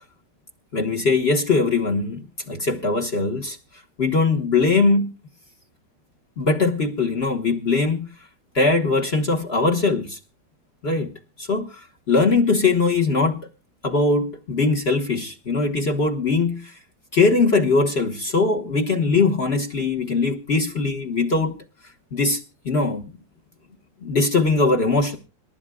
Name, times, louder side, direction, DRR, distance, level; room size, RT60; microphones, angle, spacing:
voice 1, 0.7-3.6 4.0-5.1 6.4-8.1 8.5-10.2 10.8-11.1 11.4-13.5 13.8-16.7 17.1-21.5 22.1-22.4 22.6-23.1 24.0-25.2, left 3 dB, 35° left, 1.3 m, -21 dB
27.0 x 12.0 x 2.3 m
omnidirectional pair, 2.0 m